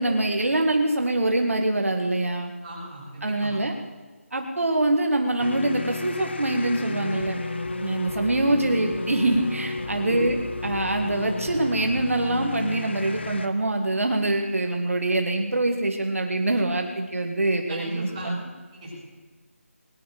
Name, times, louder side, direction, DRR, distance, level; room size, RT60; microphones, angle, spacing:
voice 1, 0.0-2.5 3.2-3.7 4.3-7.4 7.8-10.4 10.6-18.4, right 2 dB, 70° right, 3 dB, 1.9 m, -24 dB
voice 2, 2.6-3.5 7.8-7.9 9.9-10.2 17.7-18.3 18.7-18.9, right 1 dB, 15° right, -8 dB, 5.6 m, -37 dB
sound 1, 5.4-13.5, left 3 dB, 50° left, 1.0 m, -32 dB
21.0 x 10.5 x 6.7 m, 1.3 s
figure-of-eight pair, 175°, 8 cm